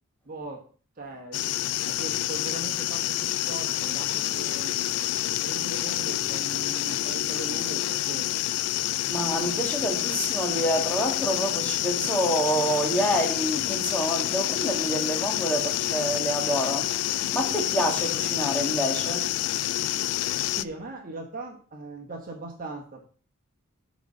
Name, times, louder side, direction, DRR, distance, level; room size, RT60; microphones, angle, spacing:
voice 1, 0.2-0.7 1.0-1.5 1.9-4.7 5.3-8.3 20.5-23.1, right 2 dB, 40° right, 1.4 m, -39 dB
sound 1, 1.3-20.6, left 13 dB, 90° left, 0.3 m, -28 dB
voice 2, 9.1-19.7 20.4-20.6, equal, 5° left, 1.8 m, -28 dB
7.7 x 4.2 x 6.5 m
head